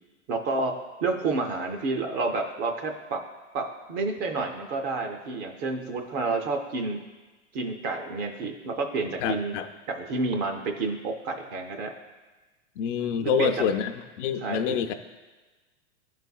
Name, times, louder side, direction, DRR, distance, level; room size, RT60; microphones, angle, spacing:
voice 1, 0.3-3.2 3.5-7.0 7.5-9.5 9.9-11.9 13.2-13.5 14.4-14.8, right 3 dB, 30° right, 4 dB, 0.5 m, -29 dB
voice 2, 9.2-9.7 12.8-13.9 14.2-14.9, left 7 dB, 70° left, 8 dB, 0.6 m, -26 dB
11.0 x 4.1 x 2.3 m, 1.2 s
hypercardioid pair, 130°, 38 cm